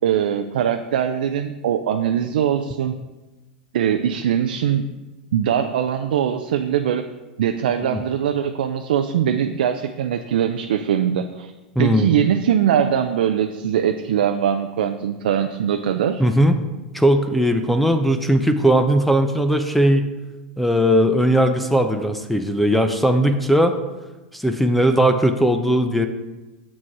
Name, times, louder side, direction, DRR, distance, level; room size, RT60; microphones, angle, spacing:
voice 1, 0.0-3.0 3.7-4.8 5.3-7.0 7.4-11.5 11.8-16.2, right 9 dB, 75° right, 6 dB, 0.5 m, -21 dB
voice 2, 11.8-12.1 16.2-16.6 16.9-20.0 20.6-23.7 24.3-26.1, equal, ahead, 7 dB, 0.6 m, -18 dB
7.4 x 6.1 x 4.7 m, 1.1 s
hypercardioid pair, 110°, 5 cm